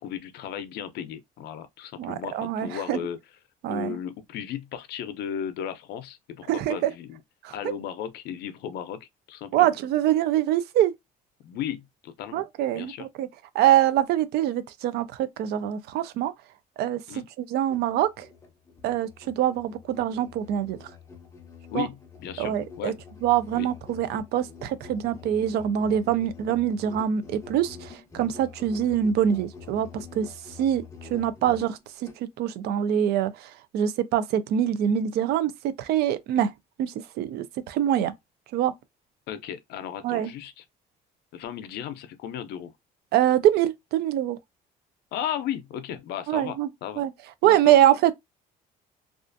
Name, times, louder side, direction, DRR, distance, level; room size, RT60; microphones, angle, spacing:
voice 1, 0.0-3.2 3.7-7.2 7.5-9.7 11.4-12.5 12.7-13.1 17.1-17.3 21.7-22.9 23.5-23.7 39.3-40.6 41.3-42.7 45.1-47.0 47.4-47.8, left 9 dB, 75° left, 0.5 m, -35 dB
voice 2, 2.0-3.0 3.6-4.0 6.5-6.9 7.4-7.5 9.5-10.9 12.3-13.3 13.5-16.3 16.8-17.0 17.4-18.3 18.8-20.9 21.7-21.9 22.4-22.9 23.2-36.5 36.8-38.1 38.5-38.7 40.0-40.3 43.1-44.4 46.3-46.7 47.0-47.1 47.4-48.1, right 11 dB, 75° right, 0.4 m, -24 dB
Musical instrument, 17.6-32.2, left 6 dB, 15° left, 0.5 m, -46 dB
2.4 x 2.4 x 2.5 m
cardioid pair, 110°, 17 cm